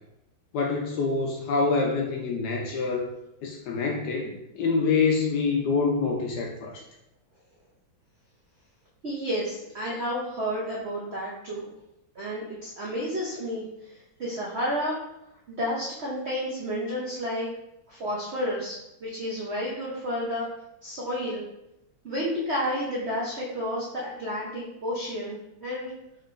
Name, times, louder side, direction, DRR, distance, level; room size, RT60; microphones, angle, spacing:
voice 1, 0.5-3.1 3.4-6.8, left 4 dB, 75° left, 0 dB, 1.0 m, -26 dB
voice 2, 9.0-11.7 12.1-15.0 15.5-17.5 17.9-20.5 20.8-21.4 22.0-25.9, equal, 90° right, -5 dB, 0.5 m, -31 dB
4.3 x 3.7 x 2.4 m, 0.88 s
omnidirectional pair, 2.2 m